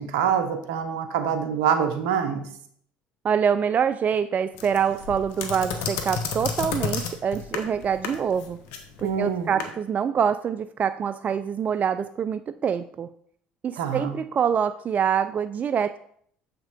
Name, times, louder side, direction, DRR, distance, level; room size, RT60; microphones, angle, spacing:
voice 1, 0.0-2.4 9.0-9.6 13.8-14.2, right 7 dB, 75° right, 8 dB, 0.9 m, -25 dB
voice 2, 3.2-8.6 9.0-13.1 13.6-16.0, right 7 dB, 40° right, 12 dB, 0.3 m, -25 dB
sound 1, 4.6-9.7, left 6 dB, 70° left, 1.1 m, -32 dB
7.4 x 5.8 x 3.5 m, 0.64 s
hypercardioid pair, 65°, 4 cm